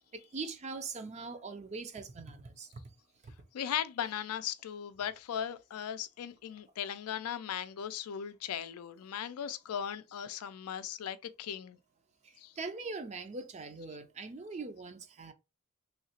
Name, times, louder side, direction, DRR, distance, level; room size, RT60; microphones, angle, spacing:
voice 1, 0.1-2.8 3.2-3.3 12.2-15.3, right 4 dB, 30° right, 0.4 m, -42 dB
voice 2, 3.5-11.8 12.4-12.5, left 9 dB, 85° left, 0.4 m, -38 dB
3.1 x 2.8 x 2.8 m
head